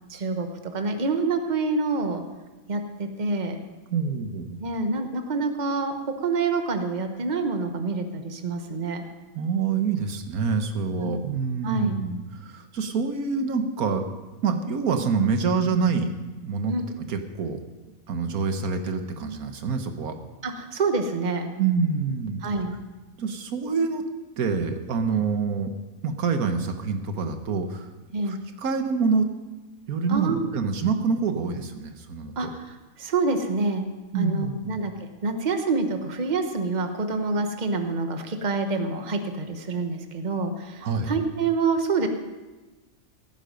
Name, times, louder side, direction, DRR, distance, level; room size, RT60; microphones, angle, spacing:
voice 1, 0.1-2.2 2.7-3.6 4.6-9.0 11.0-11.1 11.6-12.0 16.7-16.9 20.4-21.5 22.4-22.7 28.1-28.4 30.1-30.5 32.4-33.9 34.1-34.9 35.2-42.1, right 3 dB, 35° right, 6 dB, 1.2 m, -27 dB
voice 2, 3.9-4.6 9.3-14.0 14.4-17.6 18.1-20.2 21.6-22.5 23.2-24.0 24.4-25.7 26.0-27.9 28.3-29.3 29.9-32.3 34.1-34.8 40.8-41.1, right 5 dB, 90° right, 7 dB, 1.6 m, -26 dB
16.5 x 9.9 x 5.2 m, 1.2 s
omnidirectional pair, 1.5 m